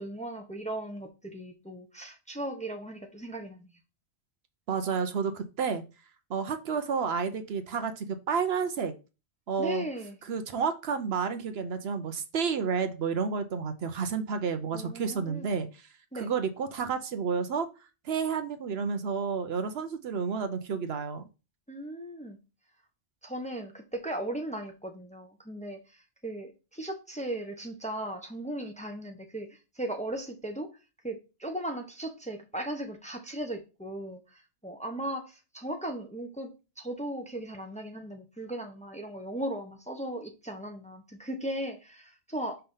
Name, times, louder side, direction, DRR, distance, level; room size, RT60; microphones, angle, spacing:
voice 1, 0.0-3.7 9.6-10.2 14.7-15.5 16.1-16.3 21.7-22.4 23.2-29.5 29.8-30.7 31.0-34.2 34.6-42.6, right 1 dB, 5° left, 0.9 m, -37 dB
voice 2, 4.7-5.8 6.3-8.9 9.5-9.8 10.3-15.8 16.2-17.7 18.0-21.2, right 6 dB, 70° right, 0.9 m, -30 dB
5.6 x 3.4 x 5.4 m
omnidirectional pair, 1.1 m